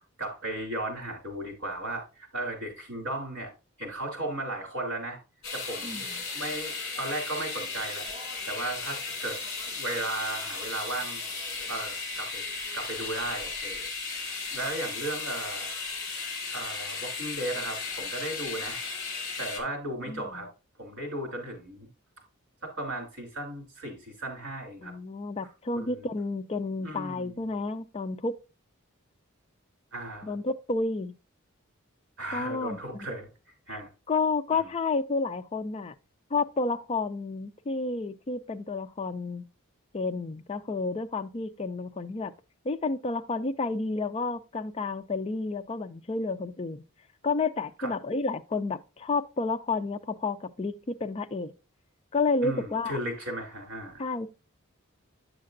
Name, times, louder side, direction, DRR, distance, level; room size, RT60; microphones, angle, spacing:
voice 1, 0.2-3.5 3.8-5.2 5.5-6.0 6.3-8.1 8.5-9.4 9.7-11.2 11.7-15.7 16.5-18.8 19.4-20.5 20.8-21.9 22.6-24.9 25.7-26.1 26.8-27.3 29.9-30.3 32.2-33.3 33.7-33.9 34.5-34.7 47.8-47.9 52.4-54.0, right 1 dB, 55° right, 3.0 m, -35 dB
sound 1, 5.4-19.6, left 4 dB, 50° left, 2.1 m, -35 dB
voice 2, 5.8-6.2 20.1-20.2 24.8-28.3 30.2-31.1 32.3-33.1 33.7-33.8 34.1-35.9 36.3-39.4 39.9-42.3 42.6-46.8 47.2-51.5 52.1-53.0 54.0-54.3, left 3 dB, 25° left, 0.4 m, -30 dB
8.7 x 6.5 x 2.5 m
head